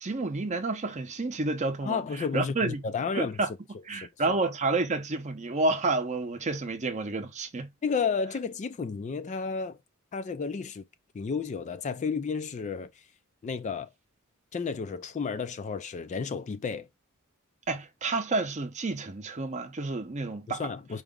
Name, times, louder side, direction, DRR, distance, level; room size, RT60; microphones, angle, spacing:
voice 1, 0.0-2.0 2.3-2.8 3.1-3.5 3.9-7.7 17.7-20.7, right 3 dB, 35° right, 0.7 m, -30 dB
voice 2, 1.8-3.4 3.9-4.4 7.8-9.8 10.1-10.8 11.1-13.0 13.4-13.9 14.5-16.9 20.5-21.0, left 5 dB, 35° left, 0.3 m, -32 dB
4.7 x 2.0 x 3.5 m
head